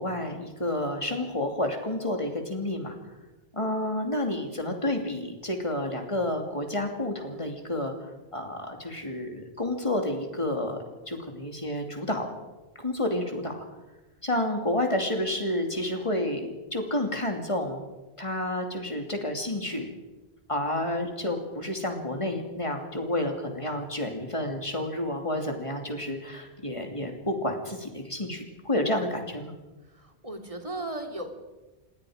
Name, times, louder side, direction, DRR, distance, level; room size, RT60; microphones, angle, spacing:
voice 1, 0.0-2.9 3.5-10.8 11.1-12.3 12.8-13.6 14.2-17.8 18.2-19.9 20.5-29.5, left 1 dB, 30° left, 3 dB, 2.8 m, -30 dB
voice 2, 30.0-31.3, right 2 dB, 30° right, 4 dB, 2.7 m, -36 dB
27.0 x 19.5 x 5.1 m, 1.1 s
omnidirectional pair, 1.1 m